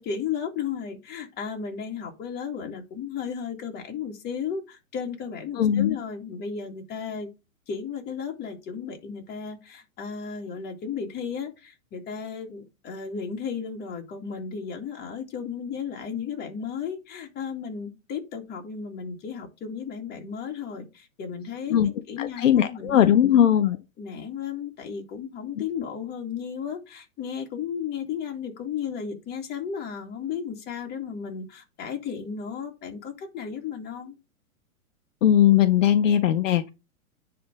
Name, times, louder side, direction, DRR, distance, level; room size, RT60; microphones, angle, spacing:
voice 1, 0.0-7.3 7.7-23.0 24.0-34.2, left 7 dB, 25° left, 2.1 m, -34 dB
voice 2, 5.6-6.0 21.7-21.9 22.2-23.8 35.2-36.7, left 10 dB, 65° left, 0.8 m, -19 dB
10.0 x 3.5 x 6.0 m
hypercardioid pair, 125°, 41 cm